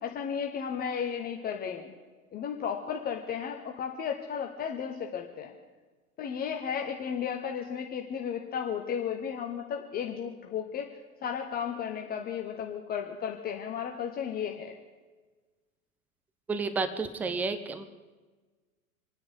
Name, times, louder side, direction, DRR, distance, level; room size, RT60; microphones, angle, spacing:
voice 1, 0.0-1.9 2.3-5.5 6.2-10.9 11.2-14.7, left 7 dB, 20° left, 2 dB, 1.1 m, -34 dB
voice 2, 16.5-17.8, right 4 dB, 5° right, 11 dB, 0.5 m, -31 dB
27.0 x 10.0 x 5.0 m, 1.3 s
figure-of-eight pair, 95°, 45 cm